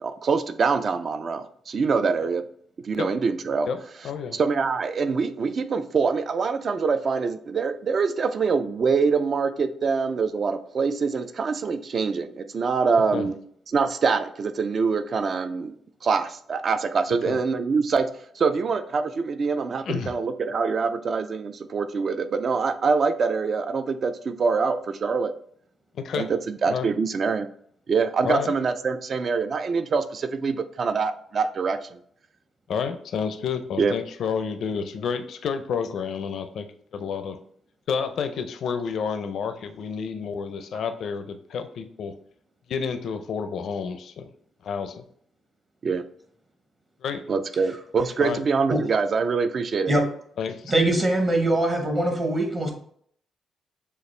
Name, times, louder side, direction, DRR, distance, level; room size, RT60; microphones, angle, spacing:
voice 1, 0.0-2.4 2.8-3.7 4.3-13.4 13.7-15.7 16.0-18.1 18.4-25.3 26.2-27.5 27.9-32.0 33.8-33.9 45.8-46.0 47.3-49.9, right 5 dB, 40° right, 10 dB, 0.4 m, -24 dB
voice 2, 4.0-4.4 13.1-13.3 17.3-17.4 19.8-20.2 25.9-26.3 26.7-26.9 28.2-28.5 32.7-37.4 37.9-42.2 42.7-44.3 44.6-45.0 47.0-47.2 48.2-48.4 50.4-50.7, left 6 dB, 65° left, 9 dB, 0.5 m, -30 dB
voice 3, 50.7-52.7, right 1 dB, 25° right, 3 dB, 0.8 m, -22 dB
6.8 x 2.4 x 3.2 m, 0.63 s
cardioid pair, 140°, 0 cm